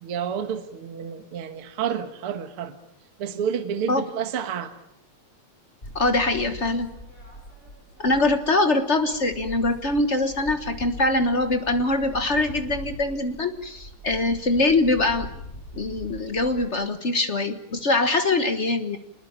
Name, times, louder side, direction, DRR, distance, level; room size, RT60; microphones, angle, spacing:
voice 1, 0.0-2.8 3.2-4.7, right 8 dB, 55° right, 8 dB, 2.1 m, -29 dB
sound 1, 5.8-8.7 9.0-16.7, left 1 dB, 15° left, 6.4 m, -41 dB
voice 2, 5.9-6.9 8.0-15.3 15.7-19.0, left 2 dB, 50° left, 8 dB, 0.8 m, -23 dB
27.0 x 20.5 x 8.7 m, 0.76 s
omnidirectional pair, 3.3 m